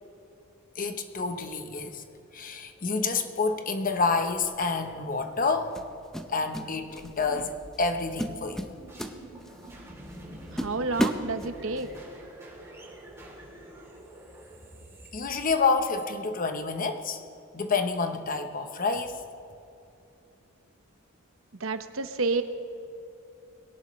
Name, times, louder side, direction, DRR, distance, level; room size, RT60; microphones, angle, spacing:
voice 1, 0.8-2.0 2.3-5.8 6.3-8.7 15.1-17.2 17.5-19.2, left 4 dB, 40° left, 7 dB, 1.0 m, -28 dB
sound 1, 4.5-4.6 5.7-6.7 7.0-7.3 7.7-7.9 8.2-9.7 10.1-10.2 10.6-11.9, equal, 5° left, 0.7 m, -32 dB
sound 2, 7.0-15.9, right 1 dB, 15° right, 3.3 m, -47 dB
voice 2, 10.5-11.9 21.6-22.4, right 3 dB, 75° right, 9 dB, 0.9 m, -29 dB
21.5 x 17.5 x 3.2 m, 2.6 s
head